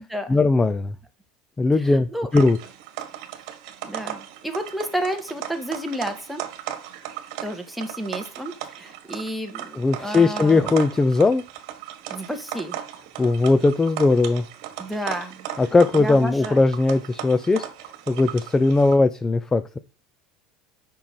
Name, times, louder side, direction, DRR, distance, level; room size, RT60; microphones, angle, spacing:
voice 1, 0.3-0.9 1.6-2.1 2.3-2.6 9.7-11.4 13.2-14.4 15.6-17.6 18.1-19.8, left 3 dB, 15° left, 12 dB, 0.6 m, -19 dB
voice 2, 1.8-2.3 3.8-6.4 7.4-10.6 12.1-12.8 14.8-15.5 15.9-16.6, equal, ahead, 5 dB, 1.6 m, -31 dB
sound 1, 2.3-19.0, right 11 dB, 70° right, 1.4 m, -37 dB
7.2 x 5.5 x 4.5 m, 0.34 s
supercardioid pair, 95°, 3 cm